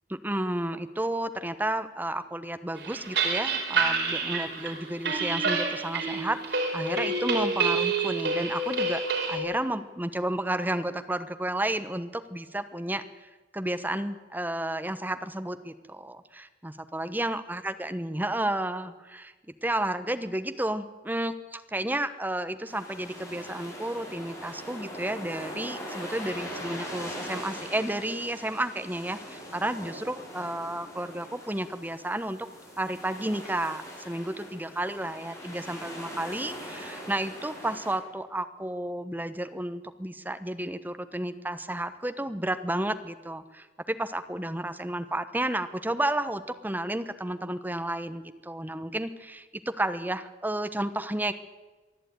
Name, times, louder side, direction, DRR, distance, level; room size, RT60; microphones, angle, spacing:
voice 1, 0.1-19.3 19.6-32.5 32.8-51.3, right 1 dB, 10° right, 10 dB, 1.1 m, -32 dB
sound 1, 2.8-9.4, right 4 dB, 75° right, 5.0 m, -28 dB
sound 2, 22.7-38.0, equal, 20° left, 7.3 m, -41 dB
23.0 x 13.0 x 9.4 m, 1.2 s
head